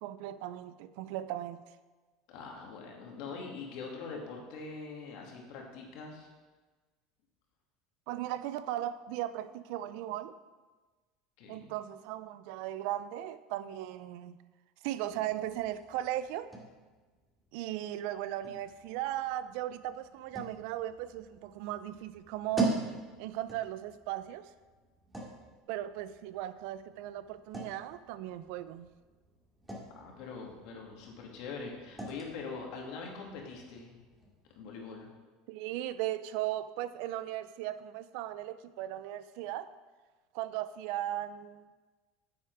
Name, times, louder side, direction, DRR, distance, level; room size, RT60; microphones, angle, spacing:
voice 1, 0.0-1.6 8.1-10.3 11.5-14.4 14.8-16.5 17.5-22.8 23.2-24.5 25.7-28.9 35.5-39.7 40.3-41.7, right 13 dB, 70° right, 14 dB, 0.5 m, -37 dB
voice 2, 2.3-6.3 11.4-11.7 29.9-34.0 34.6-35.1, left 4 dB, 65° left, 0 dB, 2.4 m, -43 dB
sound 1, 15.0-34.6, right 2 dB, 10° right, 2.5 m, -43 dB
9.3 x 7.3 x 4.8 m, 1.3 s
supercardioid pair, 100°, 0 cm